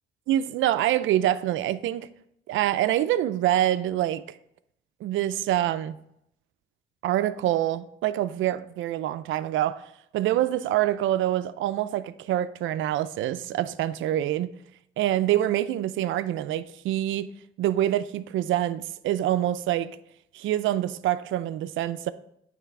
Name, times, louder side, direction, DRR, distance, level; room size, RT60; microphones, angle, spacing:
voice 1, 0.3-2.1 2.5-4.2 5.0-6.0 7.0-9.9 10.1-14.5 15.0-17.3 17.6-20.0 20.3-22.1, right 13 dB, 75° right, 0.4 m, -26 dB
9.3 x 3.3 x 4.7 m
cardioid pair, 90°, 20 cm